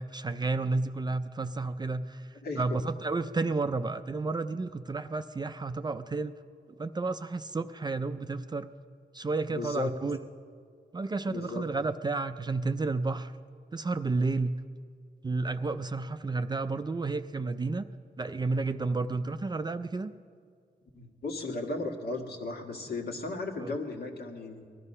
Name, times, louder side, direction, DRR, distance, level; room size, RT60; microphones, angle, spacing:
voice 1, 0.0-6.3 6.8-8.7 9.1-10.2 10.9-13.3 13.7-14.6 15.2-17.9 18.2-20.1 23.6-23.8, right 3 dB, 25° right, 10 dB, 0.4 m, -31 dB
voice 2, 2.4-2.8 9.5-9.9 11.3-11.7 20.9-24.7, left 3 dB, 65° left, 1 dB, 1.8 m, -35 dB
19.5 x 12.5 x 5.5 m, 2.1 s
wide cardioid pair, 105°, 17 cm